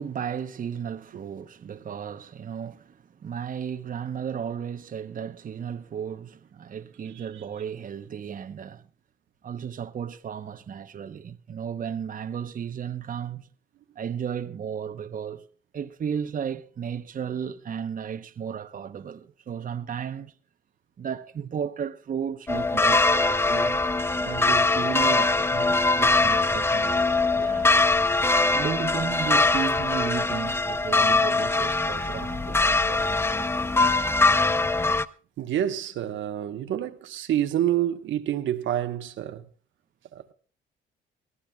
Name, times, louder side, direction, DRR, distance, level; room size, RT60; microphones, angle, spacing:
voice 1, 0.0-8.8 9.4-13.5 14.0-15.5 15.7-20.3 21.0-23.8 24.2-27.7 28.5-33.1, right 7 dB, 45° right, 0.9 m, -34 dB
sound 1, 22.5-35.0, left 3 dB, 10° left, 0.5 m, -22 dB
voice 2, 35.4-39.4, right 11 dB, 75° right, 1.1 m, -27 dB
22.0 x 14.5 x 2.3 m
cardioid pair, 90°, 20 cm